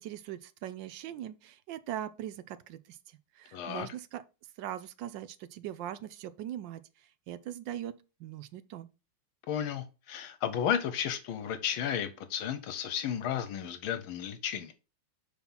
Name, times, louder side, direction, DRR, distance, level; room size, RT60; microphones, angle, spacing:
voice 1, 0.0-4.2 4.6-8.9, right 11 dB, 75° right, 1.2 m, -41 dB
voice 2, 3.5-3.9 9.5-14.7, left 9 dB, 75° left, 1.6 m, -33 dB
5.9 x 4.4 x 5.5 m
omnidirectional pair, 2.3 m